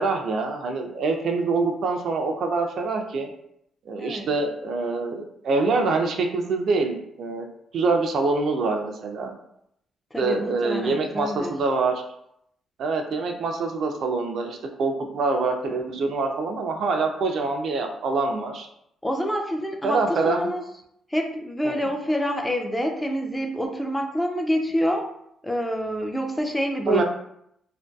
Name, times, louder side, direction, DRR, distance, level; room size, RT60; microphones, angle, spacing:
voice 1, 0.0-3.3 3.9-7.5 7.7-9.3 10.2-12.0 12.8-18.7 19.8-20.5 21.6-21.9 26.9-27.0, right 3 dB, 65° right, 3 dB, 0.3 m, -25 dB
voice 2, 10.1-11.6 19.0-20.6 21.1-25.1 25.4-27.0, equal, 10° left, 3 dB, 0.3 m, -27 dB
2.5 x 2.2 x 2.2 m, 0.75 s
cardioid pair, 90°, 0 cm